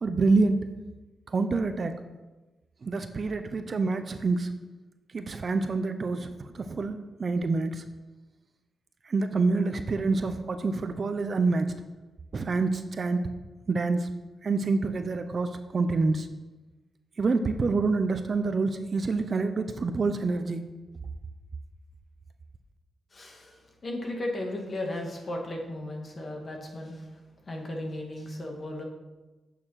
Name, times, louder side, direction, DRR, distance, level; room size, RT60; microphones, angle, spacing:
voice 1, 0.0-0.7 1.3-1.9 2.8-4.5 5.1-7.8 9.1-11.7 12.3-13.2 13.7-14.1 14.4-16.3 17.2-20.6, right 3 dB, 45° right, 9 dB, 0.7 m, -27 dB
voice 2, 23.1-27.2 27.5-28.8, left 1 dB, 40° left, 1 dB, 2.3 m, -35 dB
9.0 x 6.8 x 5.9 m, 1.1 s
cardioid pair, 95°, 0 cm